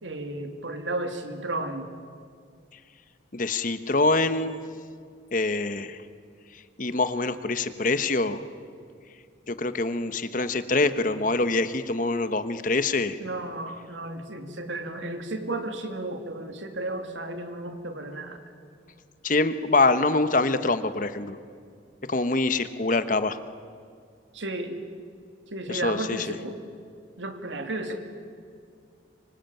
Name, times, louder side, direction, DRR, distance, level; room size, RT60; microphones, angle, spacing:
voice 1, 0.0-1.9 13.2-18.4 24.3-24.8 25.5-26.6 27.2-28.0, right 2 dB, 85° right, 6 dB, 2.7 m, -33 dB
voice 2, 3.3-4.6 5.3-6.0 6.8-8.4 9.5-13.2 19.2-21.4 22.1-23.4 25.7-26.4, left 3 dB, 45° left, 11 dB, 1.2 m, -25 dB
25.0 x 24.5 x 9.2 m, 2.2 s
head